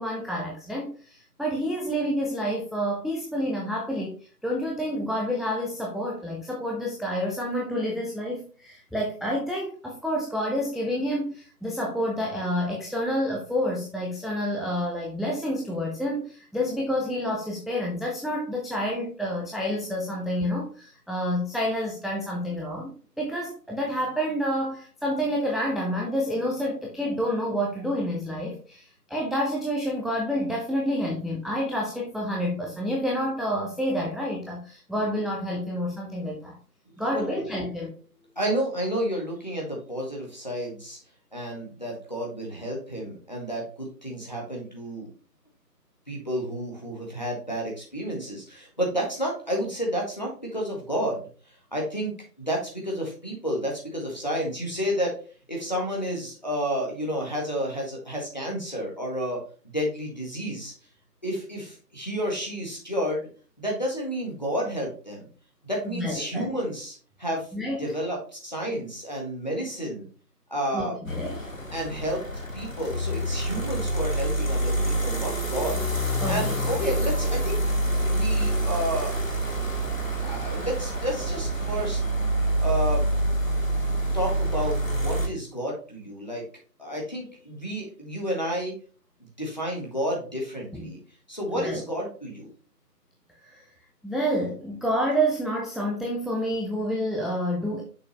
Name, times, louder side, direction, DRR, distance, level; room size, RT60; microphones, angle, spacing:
voice 1, 0.0-4.1 4.4-36.6 37.0-37.9 65.9-66.5 67.5-67.9 70.7-71.5 76.2-76.6 90.7-90.9 91.5-91.8 93.5-93.6 94.0-97.8, equal, ahead, -3 dB, 0.6 m, -29 dB
voice 2, 37.0-37.4 38.3-41.0 41.3-45.1 46.1-51.2 51.7-52.1 52.4-55.2 55.5-60.7 61.2-63.2 63.6-65.3 65.6-67.5 67.8-70.1 70.5-71.0 71.7-72.3 72.5-75.8 76.2-77.6 78.0-79.1 79.4-79.5 79.8-82.0 82.6-83.1 84.1-86.5 86.8-88.7 89.4-91.0 91.3-92.5, equal, 25° left, -2 dB, 1.6 m, -31 dB
sound 1, 71.1-85.3, right 1 dB, 55° left, 1.3 m, -27 dB
6.4 x 5.4 x 3.1 m, 0.39 s
figure-of-eight pair, 175°, 49 cm